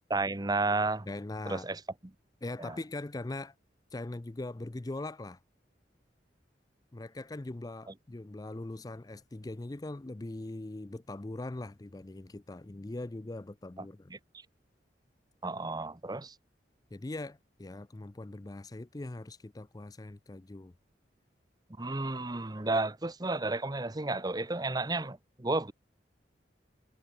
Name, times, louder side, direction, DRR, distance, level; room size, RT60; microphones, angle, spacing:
voice 1, 0.1-1.1 1.5-1.8 2.6-2.8 14.1-14.2 15.4-16.3 21.8-25.7, right 2 dB, 20° right, 0.9 m, -32 dB
voice 2, 1.1-1.7 2.4-3.5 3.9-5.4 6.9-14.1 16.9-20.7, left 2 dB, 20° left, 0.5 m, -41 dB
head